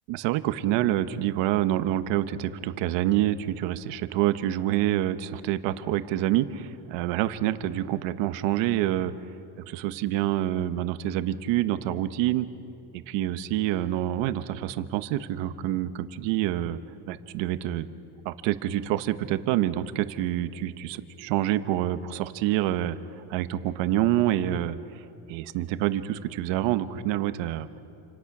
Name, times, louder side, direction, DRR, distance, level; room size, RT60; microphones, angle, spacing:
voice 1, 0.1-9.1 9.7-12.5 13.1-16.8 17.1-17.9 18.2-23.0 23.3-24.8 25.3-27.7, right 13 dB, 85° right, 12 dB, 1.1 m, -27 dB
28.5 x 26.5 x 6.1 m, 2.9 s
cardioid pair, 135°, 42 cm